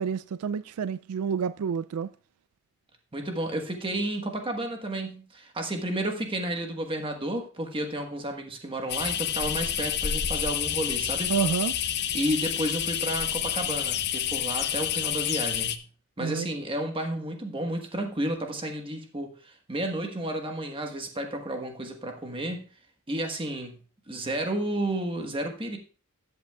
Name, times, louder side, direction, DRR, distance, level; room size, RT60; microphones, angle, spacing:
voice 1, 0.0-2.1 11.3-11.7 16.2-16.5, right 6 dB, 80° right, 0.3 m, -29 dB
voice 2, 3.1-11.3 12.1-15.8 16.2-22.6 23.1-23.8 24.1-25.8, right 1 dB, 25° right, 1.3 m, -32 dB
sound 1, 8.9-15.8, left 10 dB, 50° left, 0.7 m, -29 dB
13.5 x 8.0 x 2.3 m
head